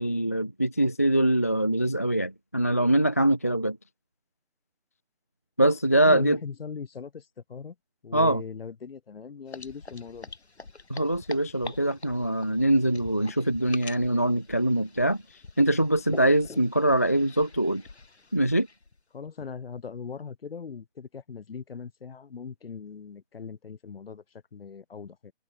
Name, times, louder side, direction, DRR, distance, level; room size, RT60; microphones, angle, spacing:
voice 1, 0.0-3.8 5.6-6.4 8.1-8.4 10.9-15.2 15.6-17.8 18.3-18.7, right 1 dB, 15° left, 0.3 m, -23 dB
voice 2, 6.0-7.2 7.5-7.7 8.0-10.3 19.1-24.2 24.5-25.3, left 6 dB, 60° left, 7.8 m, -39 dB
sound 1, 9.5-19.0, left 3 dB, 80° left, 7.8 m, -46 dB
figure-of-eight pair, 145°, 32 cm